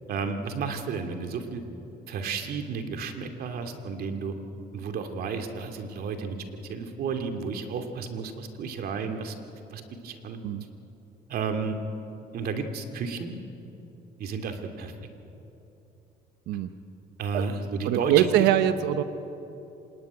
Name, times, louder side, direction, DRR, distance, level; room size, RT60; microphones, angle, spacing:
voice 1, 0.1-1.6 2.1-4.3 4.7-6.4 6.6-9.3 9.7-10.4 11.3-11.8 12.3-13.4 14.2-14.9 17.2-18.5, right 5 dB, 65° right, 6 dB, 2.6 m, -32 dB
voice 2, 17.9-19.0, right 11 dB, 85° right, 11 dB, 1.0 m, -22 dB
26.5 x 19.0 x 9.8 m, 3.0 s
cardioid pair, 110°, 17 cm